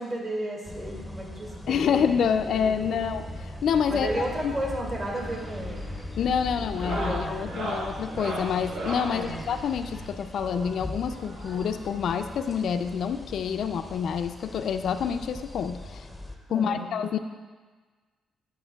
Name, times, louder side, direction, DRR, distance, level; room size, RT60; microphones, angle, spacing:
voice 1, 0.0-2.1 2.5-3.1 3.9-5.9 6.6-7.6 9.1-9.4 16.5-17.0, right 1 dB, 40° right, -2 dB, 2.1 m, -34 dB
sound 1, 0.6-16.4, left 2 dB, 5° left, 0.6 m, -40 dB
voice 2, 1.7-3.2 3.6-4.1 4.4-4.5 6.2-16.1 16.5-17.2, left 7 dB, 65° left, 8 dB, 0.3 m, -27 dB
sound 2, 3.0-10.1, right 4 dB, 20° right, 1.3 m, -47 dB
sound 3, 5.1-5.5 5.7-6.1 6.6-9.2 10.5-11.9 12.9-13.0 13.2-13.3 13.8-13.9 15.2-15.3 16.6-16.7, right 1 dB, 80° right, 1.8 m, -36 dB
13.0 x 5.7 x 2.3 m, 1.4 s
cardioid pair, 90°, 0 cm